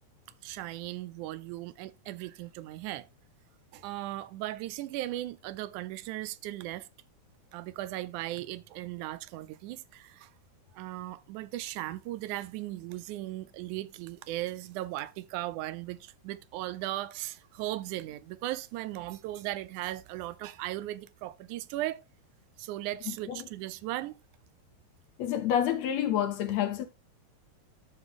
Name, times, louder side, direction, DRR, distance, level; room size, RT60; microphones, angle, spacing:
voice 1, 0.4-3.1 3.7-6.9 7.5-10.3 10.7-22.0 22.6-24.2, right 15 dB, 85° right, 2.0 m, -37 dB
voice 2, 23.1-23.5 25.2-26.9, left 10 dB, 70° left, 1.9 m, -29 dB
13.0 x 4.7 x 3.5 m
omnidirectional pair, 3.5 m